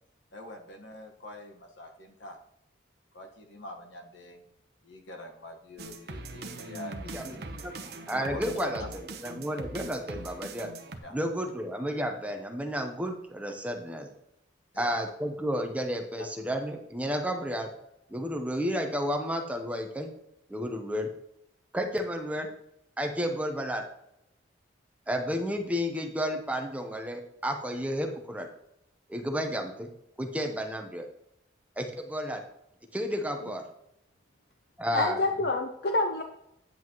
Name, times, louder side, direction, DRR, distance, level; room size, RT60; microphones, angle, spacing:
voice 1, 0.3-2.4 3.1-4.4 4.8-7.4 8.1-8.9 11.0-11.1 14.7-15.0 16.2-16.3, left 1 dB, 70° left, 4 dB, 1.5 m, -44 dB
sound 1, 5.8-11.0, right 2 dB, 55° right, 0.9 m, -41 dB
voice 2, 8.1-8.8 9.2-10.7 11.1-14.1 14.8-17.7 18.1-20.1 20.5-21.1 21.7-22.5 23.0-23.8 25.1-28.5 29.1-29.9 30.2-31.1 31.8-32.4 32.9-33.6 34.8-35.2, equal, 5° right, 3 dB, 0.8 m, -31 dB
voice 3, 34.9-36.2, left 2 dB, 55° left, 4 dB, 0.7 m, -27 dB
9.4 x 8.2 x 3.1 m, 0.80 s
head